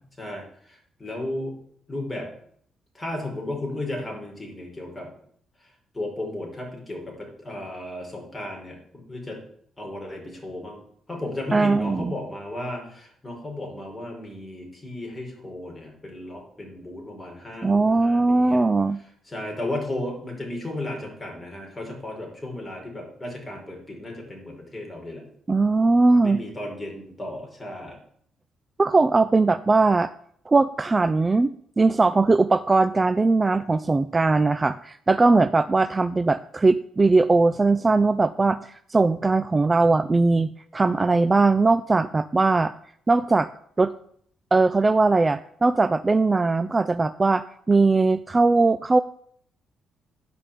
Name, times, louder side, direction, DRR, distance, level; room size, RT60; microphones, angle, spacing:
voice 1, 0.2-1.5 1.9-2.3 2.9-5.1 5.9-9.4 9.8-10.8 11.1-18.6 19.2-25.3 26.2-28.0, left 1 dB, 15° left, 0 dB, 4.7 m, -34 dB
voice 2, 11.5-12.1 17.6-19.0 25.5-26.4 28.8-30.1 30.5-42.7 43.1-43.5 43.8-43.9 44.5-49.0, right 3 dB, 25° right, 13 dB, 0.4 m, -20 dB
11.0 x 5.2 x 8.4 m, 0.64 s
cardioid pair, 90°, 0 cm